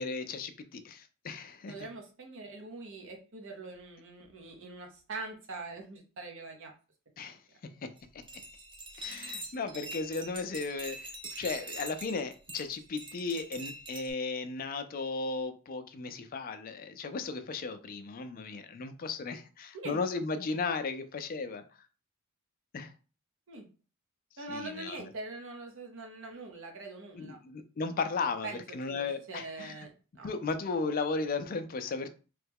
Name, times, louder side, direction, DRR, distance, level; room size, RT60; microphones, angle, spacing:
voice 1, 0.0-1.7 7.2-7.4 7.8-8.2 9.0-21.7 22.7-22.9 24.5-25.1 27.2-29.8 30.2-32.1, left 4 dB, 40° left, 9 dB, 0.4 m, -35 dB
voice 2, 1.7-6.7 19.8-20.0 23.5-23.7 24.4-27.4 28.4-28.6 28.9-30.3, right 3 dB, 60° right, 2 dB, 0.8 m, -43 dB
sound 1, 8.0-14.1, right 1 dB, 25° right, 0.5 m, -44 dB
3.1 x 2.2 x 3.4 m, 0.35 s
head